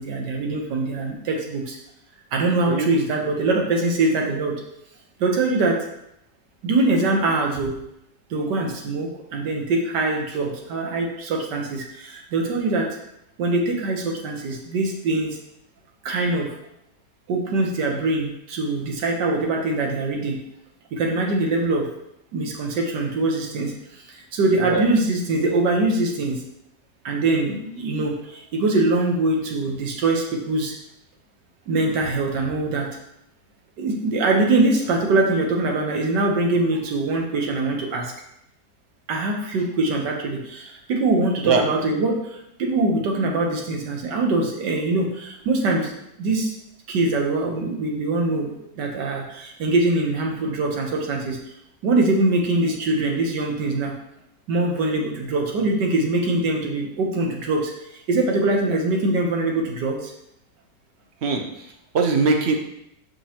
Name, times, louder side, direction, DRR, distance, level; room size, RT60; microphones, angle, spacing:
voice 1, 0.0-1.8 2.3-4.5 5.2-5.8 6.6-7.7 8.3-13.0 13.4-15.4 16.0-16.5 17.3-20.4 20.9-21.9 22.3-26.4 27.1-30.7 31.7-32.9 33.8-38.1 39.1-45.9 46.2-46.5 46.9-48.5 48.8-51.4 51.8-53.9 54.5-60.1, right 2 dB, 80° right, 1 dB, 1.7 m, -23 dB
voice 2, 61.2-61.7 61.9-62.5, right 4 dB, 50° right, 4 dB, 0.8 m, -21 dB
6.8 x 5.4 x 2.9 m, 0.79 s
omnidirectional pair, 1.8 m